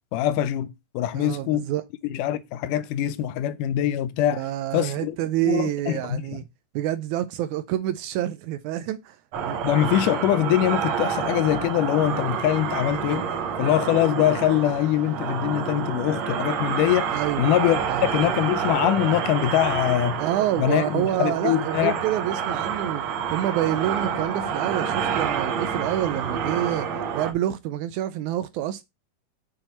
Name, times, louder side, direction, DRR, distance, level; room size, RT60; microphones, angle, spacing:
voice 1, 0.1-1.7 2.0-4.4 4.7-5.2 5.5-6.2 9.6-13.3 13.6-20.2 20.6-22.0, left 12 dB, 80° left, 2.1 m, -23 dB
voice 2, 1.1-1.8 4.4-6.4 6.8-9.2 9.4-9.7 17.1-17.4 17.9-18.1 20.2-23.0 23.3-28.8, right 12 dB, 80° right, 1.8 m, -27 dB
sound 1, 9.3-27.3, right 7 dB, 65° right, 2.1 m, -28 dB
6.8 x 6.0 x 4.2 m
omnidirectional pair, 3.8 m